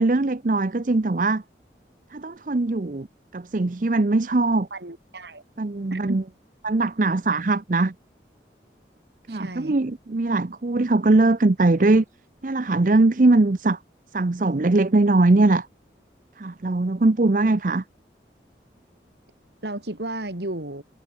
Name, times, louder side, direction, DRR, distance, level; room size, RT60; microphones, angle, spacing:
voice 1, 0.0-1.4 2.1-3.1 3.3-4.7 5.6-6.2 6.6-7.9 9.3-12.0 12.4-13.8 14.1-15.7 16.4-17.8, right 2 dB, 45° right, 0.6 m, -21 dB
voice 2, 4.7-5.4 5.9-6.2 9.3-9.7 19.6-20.8, right 1 dB, 75° right, 3.0 m, -33 dB
head